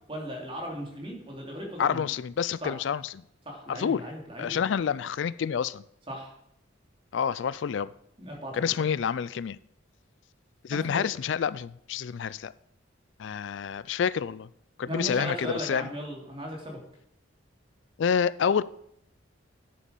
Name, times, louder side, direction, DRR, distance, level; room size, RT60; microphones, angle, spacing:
voice 1, 0.1-2.0 2.6-2.7 3.4-4.7 6.1-6.3 8.2-8.7 10.7-11.0 14.9-16.8, equal, 25° right, 3.1 m, -37 dB
voice 2, 1.8-3.1 3.7-4.0 4.4-5.8 7.1-7.9 8.5-9.6 10.6-12.5 13.2-14.5 14.8-15.9 18.0-18.6, left 7 dB, 65° left, 0.3 m, -28 dB
10.5 x 8.5 x 5.3 m
head